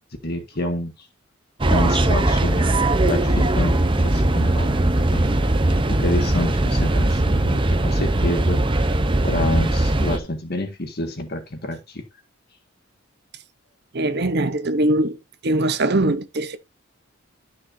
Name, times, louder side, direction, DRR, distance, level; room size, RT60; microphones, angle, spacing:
voice 1, 0.2-0.9 1.7-3.8 4.0-5.4 5.9-8.6 9.2-12.0, left 1 dB, 50° left, 1.8 m, -28 dB
sound 1, 1.6-10.2, right 1 dB, 25° right, 0.8 m, -20 dB
voice 2, 13.9-15.2 15.4-16.6, right 1 dB, 50° right, 0.9 m, -21 dB
13.0 x 6.1 x 2.7 m
head